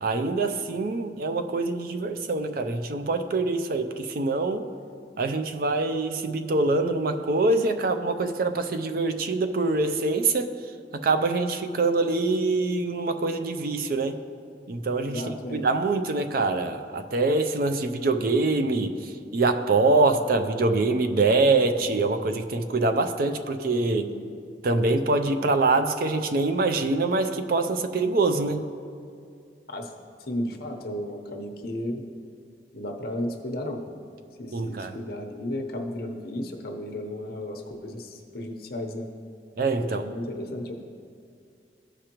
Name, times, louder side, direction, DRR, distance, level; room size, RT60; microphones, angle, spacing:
voice 1, 0.0-4.7 5.2-10.5 10.9-14.2 14.7-24.1 24.6-28.7 34.5-35.0 39.6-40.0, right 3 dB, 55° right, 8 dB, 0.4 m, -24 dB
voice 2, 15.0-15.6 23.8-24.3 29.7-29.9 30.3-32.0 32.7-33.8 34.4-39.1 39.7-40.7, left 1 dB, 60° left, 3 dB, 0.8 m, -34 dB
15.0 x 5.0 x 3.0 m, 2.3 s
head